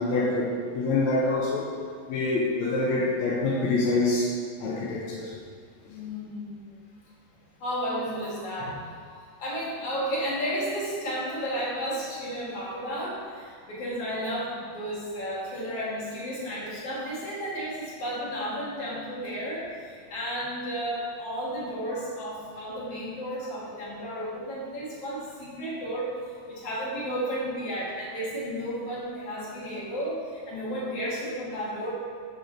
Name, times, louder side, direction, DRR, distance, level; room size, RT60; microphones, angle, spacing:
voice 1, 0.0-1.7 2.1-4.3 4.6-5.3, left 2 dB, 75° left, -4 dB, 1.7 m, -26 dB
voice 2, 5.9-6.7 7.6-8.9 9.4-26.2 26.5-31.9, equal, 50° left, -7 dB, 2.8 m, -33 dB
6.4 x 4.5 x 6.6 m, 2.2 s
omnidirectional pair, 3.9 m